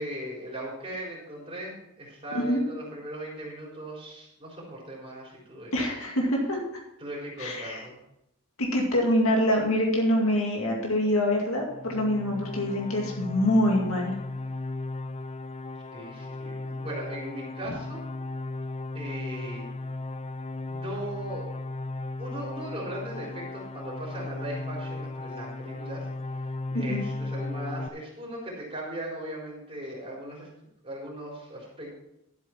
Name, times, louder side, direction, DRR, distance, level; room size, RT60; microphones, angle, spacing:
voice 1, 0.0-5.7 7.0-8.0 15.9-18.0 18.9-19.7 20.7-21.6 22.2-26.1 26.7-32.0, right 1 dB, 30° right, -4 dB, 3.9 m, -38 dB
voice 2, 2.3-2.6 5.7-6.6 7.4-7.8 8.6-14.2 26.7-27.0, left 1 dB, 80° left, 0 dB, 2.2 m, -25 dB
sound 1, 11.6-27.9, left 2 dB, 30° left, 0.4 m, -36 dB
12.0 x 8.1 x 4.4 m, 0.83 s
head